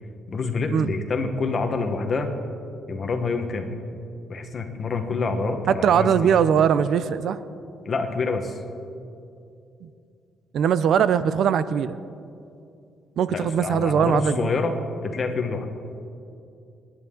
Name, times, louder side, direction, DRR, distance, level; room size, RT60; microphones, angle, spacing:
voice 1, 0.3-2.3 2.9-3.7 4.3-6.4 7.8-8.6 13.3-14.7 15.0-15.7, left 4 dB, 35° left, 5 dB, 1.3 m, -27 dB
voice 2, 5.7-7.4 9.8-9.9 10.5-12.0 13.2-14.5, right 8 dB, 65° right, 14 dB, 0.4 m, -21 dB
24.0 x 10.5 x 3.8 m, 2.5 s
cardioid pair, 150°, 0 cm